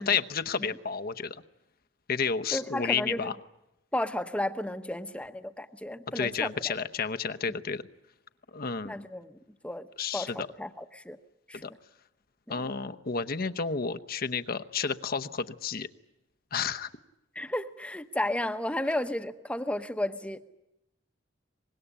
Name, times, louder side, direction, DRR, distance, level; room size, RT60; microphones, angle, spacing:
voice 1, 0.0-1.4 2.1-3.3 6.1-7.8 8.5-9.0 10.0-10.5 11.5-11.7 12.5-15.9 16.5-16.9, left 6 dB, 50° left, 9 dB, 0.9 m, -31 dB
voice 2, 2.5-3.3 3.9-6.7 8.8-9.4 9.6-9.9 10.1-11.2 11.5-11.8 12.6-12.7 17.3-20.4, left 1 dB, 5° left, 9 dB, 1.0 m, -33 dB
24.5 x 21.0 x 10.0 m, 0.87 s
head